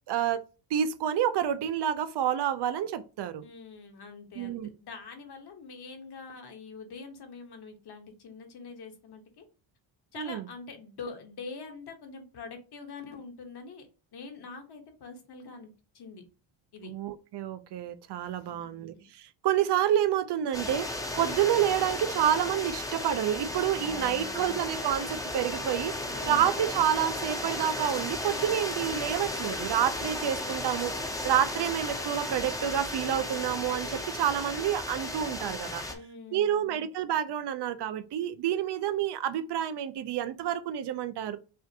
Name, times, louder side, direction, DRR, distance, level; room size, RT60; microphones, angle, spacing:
voice 1, 0.1-0.4 0.7-3.4 4.4-4.7 10.2-10.4 16.8-20.9 21.2-25.9 26.3-30.9 31.2-35.8 36.3-41.4, right 10 dB, 55° right, 0.5 m, -28 dB
voice 2, 3.4-9.4 10.1-13.9 14.1-16.2 16.7-16.9 18.5-18.9 23.8-24.6 26.0-26.5 35.9-36.7, left 4 dB, 50° left, 1.1 m, -44 dB
sound 1, 20.5-35.9, left 1 dB, 5° left, 0.5 m, -35 dB
5.6 x 2.5 x 2.8 m
cardioid pair, 140°, 48 cm